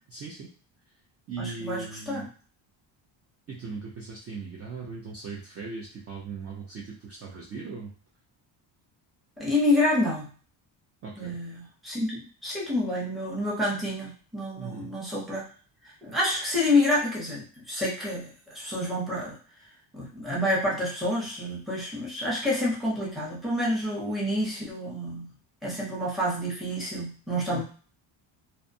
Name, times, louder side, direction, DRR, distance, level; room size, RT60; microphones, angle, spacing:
voice 1, 0.1-0.5 1.3-2.3 3.5-7.9 11.0-11.4 14.6-14.9 27.5-27.6, right 4 dB, 35° right, -3 dB, 0.4 m, -39 dB
voice 2, 1.4-2.3 9.4-10.3 11.2-15.5 16.0-19.4 19.9-25.3 25.6-27.6, left 1 dB, ahead, -5 dB, 0.7 m, -28 dB
2.6 x 2.1 x 2.6 m, 0.41 s
cardioid pair, 160°, 46 cm